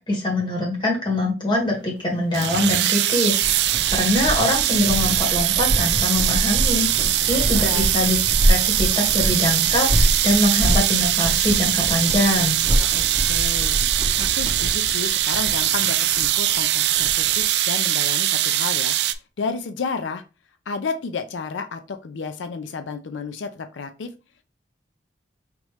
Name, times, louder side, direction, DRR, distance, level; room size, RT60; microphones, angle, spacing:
voice 1, 0.1-12.6, left 1 dB, 25° left, -2 dB, 1.8 m, -23 dB
sound 1, 2.3-19.1, right 13 dB, 65° right, 0.4 m, -21 dB
sound 2, 3.3-17.4, equal, 30° right, 1.0 m, -26 dB
voice 2, 7.0-7.9 12.8-13.7 14.2-18.9 19.4-20.2 20.7-24.1, left 4 dB, 90° left, 9 dB, 0.5 m, -32 dB
5.1 x 3.1 x 3.2 m, 0.31 s
head